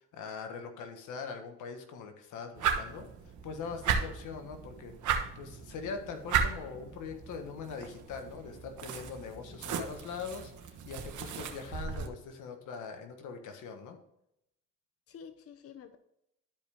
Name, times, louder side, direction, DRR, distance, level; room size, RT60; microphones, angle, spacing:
voice 1, 0.1-14.0, left 5 dB, 90° left, 6 dB, 1.5 m, -42 dB
sound 1, 2.6-12.1, right 7 dB, 75° right, 1.4 m, -35 dB
voice 2, 9.3-9.6 15.1-16.0, left 7 dB, 50° left, 9 dB, 0.8 m, -50 dB
12.0 x 5.2 x 3.6 m, 0.79 s
cardioid pair, 90°, 30 cm